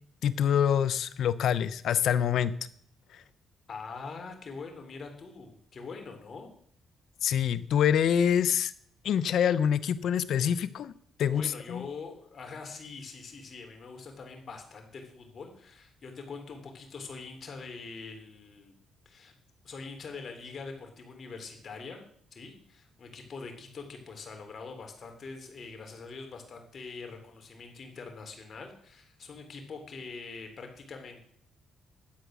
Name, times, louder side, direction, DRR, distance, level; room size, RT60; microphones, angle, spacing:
voice 1, 0.2-2.5 3.1-3.2 7.2-8.7 9.0-10.9 11.2-11.8, left 9 dB, 70° left, 14 dB, 0.8 m, -26 dB
voice 2, 3.7-6.5 11.2-18.7 19.0-19.3 19.6-22.0 22.3-31.2, left 4 dB, 45° left, 4 dB, 3.2 m, -43 dB
11.5 x 8.1 x 6.3 m, 0.63 s
cardioid pair, 90°, 0 cm